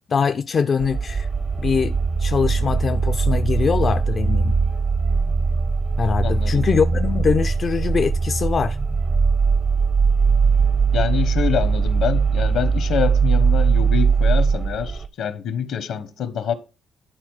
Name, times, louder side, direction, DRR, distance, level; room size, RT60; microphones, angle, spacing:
voice 1, 0.1-1.3 1.6-4.5 6.0-8.8, left 6 dB, 45° left, 0.4 m, -22 dB
sound 1, 0.8-15.1, right 5 dB, 35° right, 0.5 m, -20 dB
voice 2, 6.2-6.7 10.9-16.5, left 8 dB, 75° left, 1.1 m, -26 dB
11.0 x 4.3 x 4.7 m
cardioid pair, 90°, 0 cm